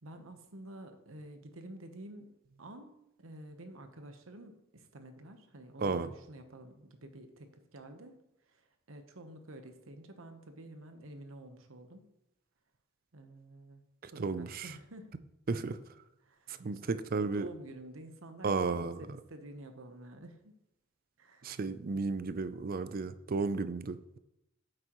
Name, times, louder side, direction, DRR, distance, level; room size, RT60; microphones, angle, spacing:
voice 1, 0.0-2.3 2.6-2.9 3.2-8.2 8.5-12.1 13.1-15.1 15.5-15.8 16.2-20.5 21.2-21.6, right 1 dB, 85° right, 7 dB, 1.1 m, -50 dB
voice 2, 5.8-6.1 14.0-14.7 15.5-15.7 16.5-17.5 18.4-19.1 21.4-24.2, right 4 dB, 45° right, 13 dB, 0.4 m, -33 dB
9.8 x 7.8 x 3.1 m, 0.85 s
head